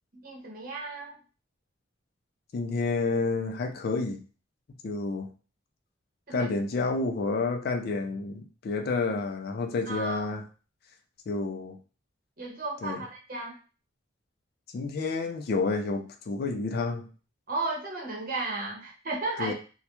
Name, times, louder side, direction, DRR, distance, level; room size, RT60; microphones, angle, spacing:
voice 1, 0.2-1.2 6.3-6.5 9.9-10.2 12.4-13.6 17.5-19.5, right 3 dB, 45° right, -2 dB, 0.8 m, -34 dB
voice 2, 2.5-4.2 4.8-5.3 6.3-10.4 11.3-11.8 12.8-13.0 14.7-17.1 19.4-19.5, left 3 dB, 50° left, 5 dB, 0.3 m, -29 dB
2.3 x 2.1 x 2.8 m, 0.36 s
head